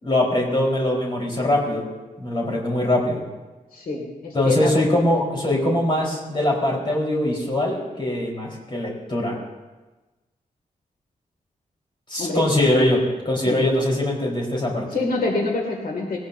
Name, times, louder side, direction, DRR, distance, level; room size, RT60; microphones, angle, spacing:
voice 1, 0.0-1.9 2.2-3.2 4.3-9.4 12.1-14.9, left 1 dB, 35° left, -3 dB, 4.2 m, -22 dB
voice 2, 3.7-4.7 12.2-12.4 13.4-13.6 14.9-16.2, left 3 dB, 85° left, 0 dB, 2.4 m, -26 dB
20.5 x 18.0 x 2.7 m, 1.2 s
wide cardioid pair, 150°, 14 cm